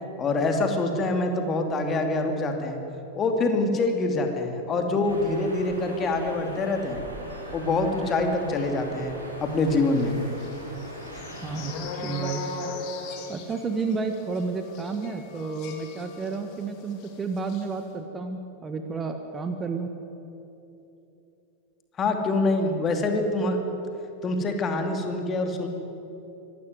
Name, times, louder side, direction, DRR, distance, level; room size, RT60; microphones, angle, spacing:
voice 1, 0.2-2.8 3.1-7.0 7.5-10.1 22.0-23.6 24.2-25.7, left 2 dB, 25° left, 4 dB, 2.7 m, -25 dB
sound 1, 5.0-11.8, right 1 dB, 80° right, 4.9 m, -41 dB
sound 2, 9.9-16.6 16.9-17.1 17.4-17.6, left 3 dB, 40° left, 2.9 m, -38 dB
voice 2, 11.4-11.7 12.0-12.4 13.3-19.9, right 4 dB, 20° right, 7 dB, 1.4 m, -31 dB
24.5 x 13.0 x 9.4 m, 3.0 s
figure-of-eight pair, 90°, 0 cm